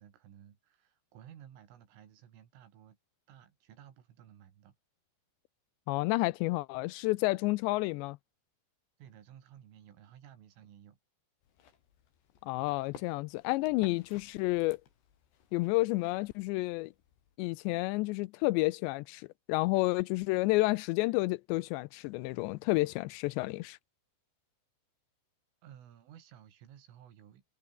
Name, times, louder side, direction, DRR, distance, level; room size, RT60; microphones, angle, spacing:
voice 1, 0.0-3.0 3.3-4.7 7.4-7.5 9.0-11.0 25.6-27.4, right 10 dB, 80° right, 5.5 m, -55 dB
voice 2, 5.9-8.2 12.4-14.8 15.5-16.9 17.4-23.8, left 22 dB, 90° left, 2.5 m, -30 dB
sound 1, 11.4-17.4, left 8 dB, 60° left, 5.0 m, -56 dB
omnidirectional pair, 5.6 m